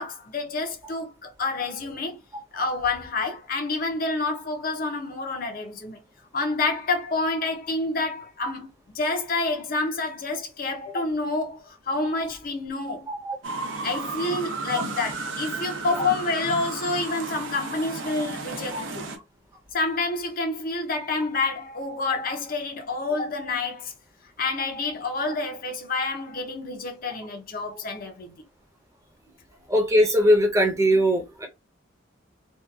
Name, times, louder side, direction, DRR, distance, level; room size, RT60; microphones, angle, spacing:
voice 1, 0.0-2.2 2.5-6.0 6.3-13.1 13.8-19.1 19.7-23.9 24.4-28.3, left 3 dB, 45° left, 0.6 m, -28 dB
sound 1, 13.4-19.2, right 3 dB, 75° right, 0.6 m, -33 dB
voice 2, 29.7-31.5, equal, 15° right, 0.7 m, -20 dB
2.8 x 2.4 x 2.3 m
head